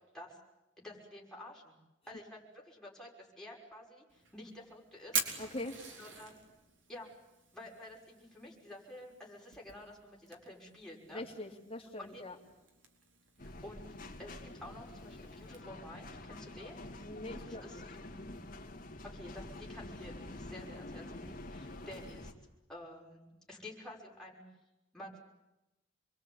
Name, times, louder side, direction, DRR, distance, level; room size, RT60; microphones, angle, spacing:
voice 1, 0.8-1.7 2.1-5.2 6.0-6.4 6.9-7.1 7.5-11.2 12.0-12.3 13.4-13.9 14.2-16.8 17.5-17.8 19.0-22.3 22.7-24.4 24.9-25.2, left 1 dB, 5° left, -3 dB, 6.1 m, -50 dB
Fire, 4.1-15.6, right 5 dB, 70° right, 4.3 m, -45 dB
voice 2, 5.4-5.7 11.1-12.3 16.9-17.8, left 2 dB, 30° left, 1 dB, 3.3 m, -43 dB
sound 1, 13.4-22.3, left 1 dB, 45° left, 2.6 m, -47 dB
27.5 x 22.5 x 8.9 m, 0.96 s
head